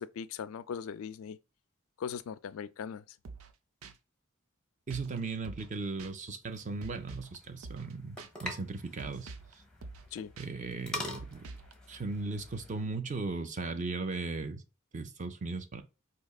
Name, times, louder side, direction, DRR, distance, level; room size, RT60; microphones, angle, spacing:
voice 1, 0.0-1.4 2.0-3.2 10.1-10.3, left 7 dB, 75° left, 0.3 m, -39 dB
sound 1, 3.2-3.5 3.8-3.9 4.9-5.2 5.4-5.7 6.0-6.1 6.8-7.4 7.6-7.9 8.2-8.3 9.0-9.5 9.8-10.1 10.4-10.5 11.2-11.7, right 3 dB, 85° right, 0.5 m, -46 dB
voice 2, 4.9-9.3 10.4-11.5 11.9-14.6 14.9-15.8, right 3 dB, 35° right, 0.5 m, -37 dB
sound 2, 6.4-12.8, left 1 dB, 5° left, 0.7 m, -45 dB
4.3 x 2.8 x 2.3 m
head